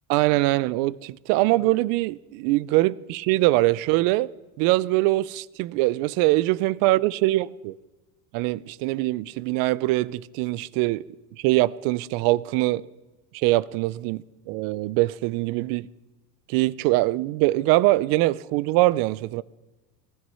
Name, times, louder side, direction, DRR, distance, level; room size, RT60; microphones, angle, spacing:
voice 1, 0.1-4.3 4.6-7.7 8.3-11.0 11.4-12.8 13.3-15.9 16.5-19.4, right 19 dB, 50° right, 0.5 m, -23 dB
18.0 x 12.5 x 5.6 m
supercardioid pair, 145°, 44 cm